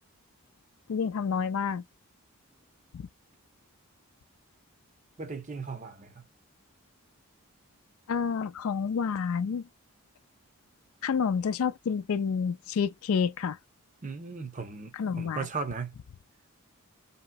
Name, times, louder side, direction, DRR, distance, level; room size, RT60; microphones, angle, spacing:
voice 1, 0.9-1.8 2.9-3.1 8.1-9.7 11.0-13.6 14.9-15.5, left 6 dB, 75° left, 0.4 m, -29 dB
voice 2, 5.2-6.2 14.0-15.9, right 4 dB, 35° right, 0.6 m, -37 dB
2.9 x 2.8 x 2.2 m
head